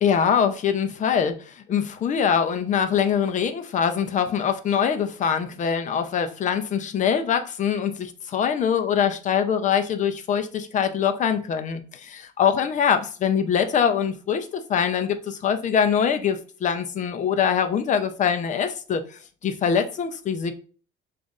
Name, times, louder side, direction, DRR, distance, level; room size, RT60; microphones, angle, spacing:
voice 1, 0.0-20.5, left 7 dB, 35° left, 0.5 m, -23 dB
6.9 x 2.5 x 2.4 m
cardioid pair, 135°, 21 cm